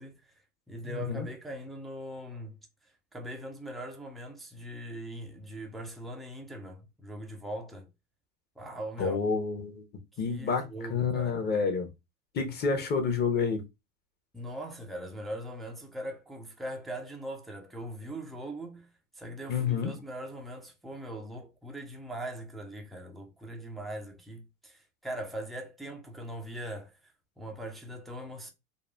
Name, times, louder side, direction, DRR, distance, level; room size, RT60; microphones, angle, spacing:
voice 1, 0.0-7.9 8.6-9.2 10.2-11.5 14.3-18.9 19.1-28.5, right 1 dB, ahead, 0.4 m, -41 dB
voice 2, 0.8-1.3 9.0-9.8 10.2-11.9 12.3-13.6 19.5-20.0, left 5 dB, 25° left, 0.8 m, -29 dB
3.8 x 2.4 x 2.2 m
figure-of-eight pair, 80°, 40 cm